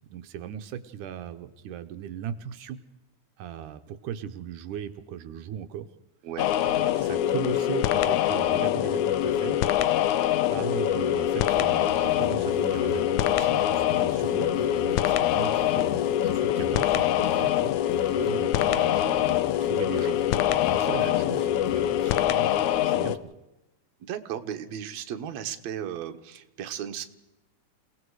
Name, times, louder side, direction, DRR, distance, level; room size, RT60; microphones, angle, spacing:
voice 1, 0.1-2.8 3.4-5.9 6.6-9.7 10.5-17.7 18.1-23.3, right 9 dB, 85° right, 9 dB, 2.4 m, -38 dB
sound 1, 6.4-23.2, left 12 dB, 75° left, 2.2 m, -24 dB
sound 2, 11.5-22.4, left 8 dB, 50° left, 2.6 m, -41 dB
voice 2, 24.0-27.0, right 9 dB, 65° right, 7 dB, 2.4 m, -35 dB
29.5 x 18.5 x 4.8 m, 0.98 s
omnidirectional pair, 3.6 m